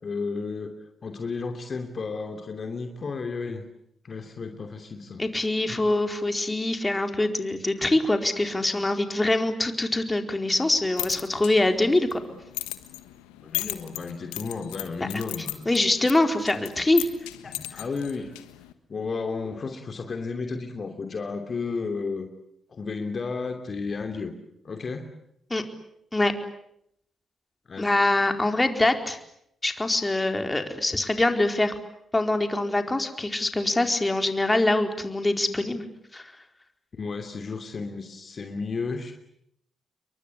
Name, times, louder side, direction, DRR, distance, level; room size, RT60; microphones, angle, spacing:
voice 1, 0.0-3.6 4.0-5.2 5.7-5.9 13.4-15.7 17.4-18.3 18.9-22.3 22.7-24.3 24.6-25.1 27.7-27.9 36.9-39.1, left 4 dB, 50° left, 5 dB, 2.9 m, -33 dB
voice 2, 5.2-12.2 15.0-15.1 15.7-17.0 25.5-25.6 26.1-26.3 27.8-29.2 29.6-31.7 32.1-35.8 36.1-36.3, left 2 dB, 20° left, 6 dB, 4.3 m, -24 dB
sound 1, 10.7-18.7, left 18 dB, 85° left, 1.4 m, -37 dB
29.5 x 23.0 x 8.5 m, 0.75 s
hypercardioid pair, 45°, 0 cm